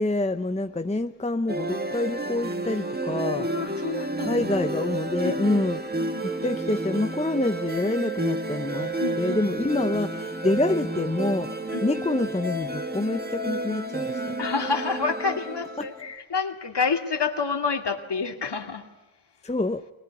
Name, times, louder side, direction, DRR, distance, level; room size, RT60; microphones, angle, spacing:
voice 1, 0.0-3.5 4.3-5.8 6.4-8.9 9.2-11.5 11.8-14.3 15.8-15.9 19.4-19.8, left 2 dB, 15° left, 8 dB, 0.8 m, -26 dB
sound 1, 1.5-16.0, right 2 dB, 20° right, 1.7 m, -31 dB
voice 2, 3.3-4.4 5.2-5.6 6.0-6.1 9.0-9.4 11.7-11.9 14.4-18.8, left 5 dB, 55° left, 5 dB, 2.3 m, -29 dB
22.0 x 19.5 x 9.7 m, 1.0 s
wide cardioid pair, 90°, 49 cm